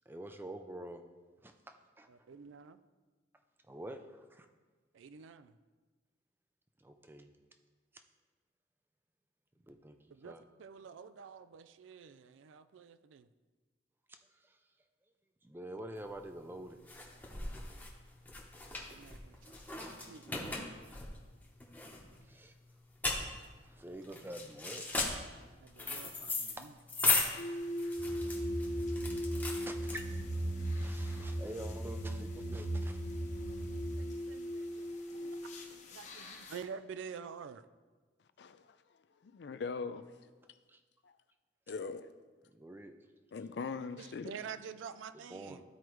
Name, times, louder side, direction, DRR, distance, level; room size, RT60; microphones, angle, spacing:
voice 1, 0.1-1.0 1.4-2.1 3.7-4.5 6.8-7.3 9.6-10.0 10.2-10.4 14.3-14.6 15.4-16.8 22.3-22.5 23.6-25.0 26.6-27.1 29.6-30.1 30.6-33.0 40.7-40.8 42.5-42.9 45.1-45.6, right 1 dB, 10° right, 6 dB, 0.4 m, -47 dB
voice 2, 2.1-2.8 4.9-5.5 10.1-13.3 18.9-20.7 25.6-26.7 34.0-34.9 35.2-35.4 35.9-37.6 44.0-45.6, right 6 dB, 85° right, 12 dB, 0.4 m, -48 dB
sound 1, 16.0-30.4, left 3 dB, 10° left, 0.9 m, -37 dB
sound 2, 27.4-36.6, equal, 40° left, 0.8 m, -41 dB
sound 3, 28.0-33.9, right 1 dB, 45° right, 1.5 m, -38 dB
voice 3, 38.4-38.8 39.2-40.0 41.0-41.1 41.7-42.1 43.3-44.3, left 4 dB, 60° left, 11 dB, 0.4 m, -40 dB
13.0 x 4.6 x 3.1 m, 1.4 s
head